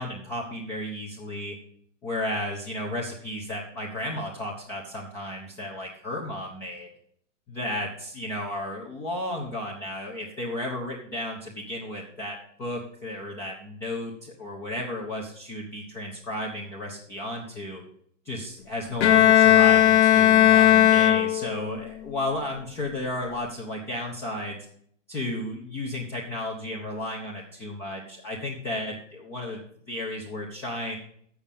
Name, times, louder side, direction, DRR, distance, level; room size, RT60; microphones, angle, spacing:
voice 1, 0.0-1.6 2.0-6.9 7.5-17.8 18.3-24.6 25.1-31.0, left 1 dB, 5° left, -3 dB, 0.3 m, -33 dB
Bowed string instrument, 19.0-21.7, left 12 dB, 60° left, 0.8 m, -17 dB
7.1 x 6.9 x 7.1 m, 0.65 s
hypercardioid pair, 140°, 38 cm